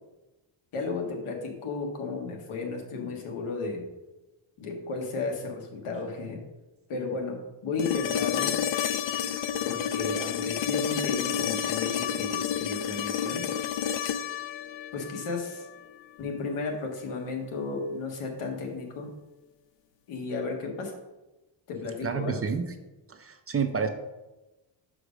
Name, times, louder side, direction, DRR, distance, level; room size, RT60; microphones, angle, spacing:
voice 1, 0.7-3.9 4.6-6.4 6.9-8.6 9.7-13.4 14.9-15.7 16.2-19.1 20.1-20.9 21.7-22.4, left 4 dB, 80° left, 2 dB, 1.6 m, -34 dB
sound 1, 7.8-15.8 18.0-18.1, left 9 dB, 65° left, 0.5 m, -30 dB
voice 2, 22.0-22.7 23.1-23.9, right 6 dB, 30° right, 7 dB, 0.5 m, -29 dB
5.2 x 4.9 x 6.1 m, 1.1 s
cardioid pair, 135°, 50 cm